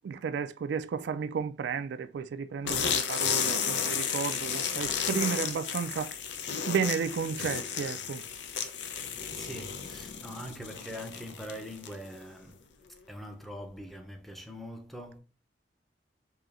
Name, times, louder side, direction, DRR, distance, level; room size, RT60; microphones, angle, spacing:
voice 1, 0.0-6.1 6.7-8.2, right 6 dB, 80° right, 0.3 m, -32 dB
sound 1, 2.7-12.2, left 7 dB, 85° left, 0.6 m, -33 dB
voice 2, 9.3-12.6 13.1-15.2, equal, ahead, 0.6 m, -43 dB
4.8 x 2.8 x 2.5 m
head